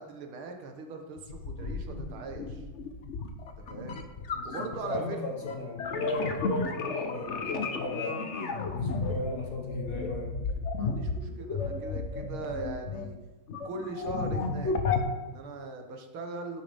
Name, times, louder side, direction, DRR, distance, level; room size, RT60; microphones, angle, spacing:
voice 1, 0.0-2.6 3.6-4.0 4.4-5.2 10.7-13.2 13.6-14.8 15.2-16.6, right 3 dB, 75° right, 4 dB, 1.9 m, -40 dB
sound 1, 1.2-5.0 5.4-13.1 13.5-15.0, left 4 dB, 75° left, 0.6 m, -33 dB
voice 2, 4.3-8.3 8.7-10.3, left 2 dB, 50° left, 1 dB, 1.3 m, -36 dB
10.5 x 9.7 x 3.5 m, 1.1 s
omnidirectional pair, 2.4 m